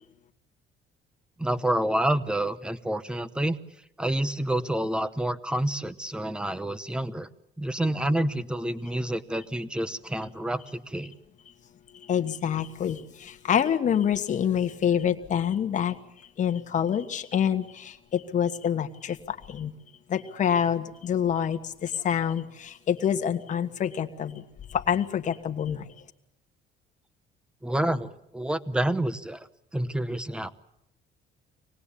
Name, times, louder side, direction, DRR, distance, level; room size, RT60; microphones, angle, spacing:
voice 1, 1.4-3.6 4.0-7.3 7.6-11.1 27.6-29.5 29.7-30.5, right 1 dB, 5° right, 13 dB, 0.9 m, -28 dB
voice 2, 12.1-15.9 16.4-19.7 20.1-24.4 24.7-25.8, left 8 dB, 40° left, 7 dB, 1.5 m, -27 dB
25.5 x 19.0 x 8.5 m, 0.81 s
cardioid pair, 155°, 20 cm